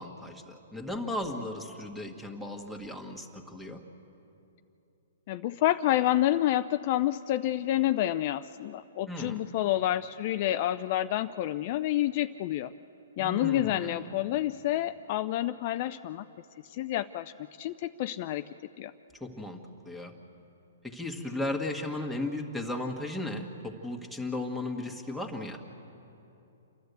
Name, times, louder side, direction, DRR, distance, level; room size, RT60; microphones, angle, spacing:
voice 1, 0.0-3.8 9.1-9.4 13.2-14.1 19.2-20.1 20.8-25.6, left 1 dB, ahead, 3 dB, 1.6 m, -36 dB
voice 2, 5.3-12.7 13.2-16.3 16.7-17.3 17.6-18.4 18.8-18.9, left 13 dB, 40° left, 10 dB, 0.4 m, -28 dB
29.0 x 11.5 x 8.1 m, 2.9 s
hypercardioid pair, 150°, 0 cm